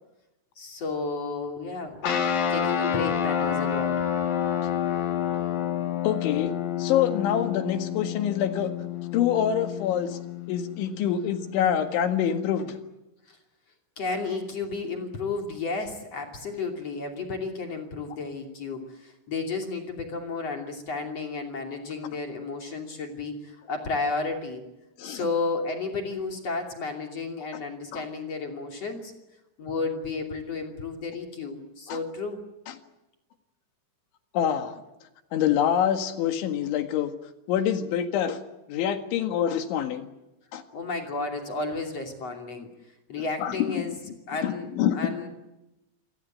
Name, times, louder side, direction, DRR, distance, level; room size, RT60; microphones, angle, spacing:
voice 1, 0.6-2.0 2.5-3.9 13.3-13.4 14.0-24.6 25.0-29.1 29.6-32.4 40.7-42.7 43.1-44.0 44.3-45.3, left 3 dB, 40° left, 3 dB, 3.3 m, -32 dB
sound 1, 2.0-12.7, left 9 dB, 55° left, 3.8 m, -29 dB
voice 2, 6.0-6.5 6.8-8.7 9.1-10.2 10.5-12.8 25.0-25.3 27.9-28.0 31.9-32.0 34.3-34.8 35.3-37.1 37.5-38.4 38.7-40.1 40.5-40.6 43.4-43.8 44.4-45.0, left 9 dB, 80° left, 7 dB, 4.2 m, -26 dB
28.0 x 17.0 x 9.2 m, 0.97 s
omnidirectional pair, 5.4 m